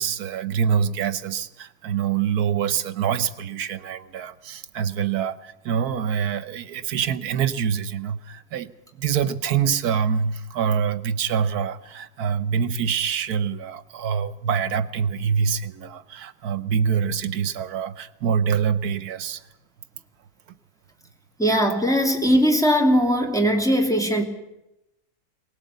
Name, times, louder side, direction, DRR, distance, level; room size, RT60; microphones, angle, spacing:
voice 1, 0.0-19.4, right 7 dB, 75° right, 1.5 m, -25 dB
voice 2, 21.4-24.2, equal, ahead, 2.5 m, -20 dB
23.0 x 19.0 x 8.3 m
omnidirectional pair, 1.7 m